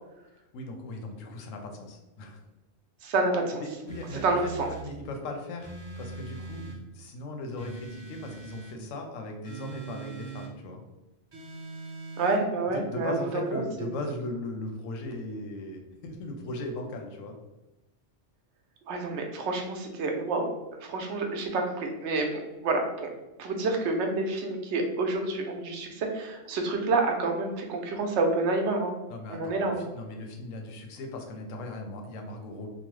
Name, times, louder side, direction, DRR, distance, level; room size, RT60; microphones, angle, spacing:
voice 1, 0.5-2.4 3.6-4.5 4.8-10.8 12.7-17.3 29.1-32.7, left 2 dB, 85° left, 3 dB, 1.0 m, -38 dB
voice 2, 3.0-3.6 4.2-4.7 12.2-13.6 18.9-20.5 20.8-23.1 23.4-28.9 29.3-29.9, right 3 dB, 70° right, 3 dB, 0.8 m, -28 dB
sound 1, 3.9-4.9 5.6-6.8 7.6-8.8 9.4-10.5 11.3-12.4, right 4 dB, 35° right, 0.4 m, -41 dB
2.9 x 2.0 x 3.0 m, 1.0 s
omnidirectional pair, 1.3 m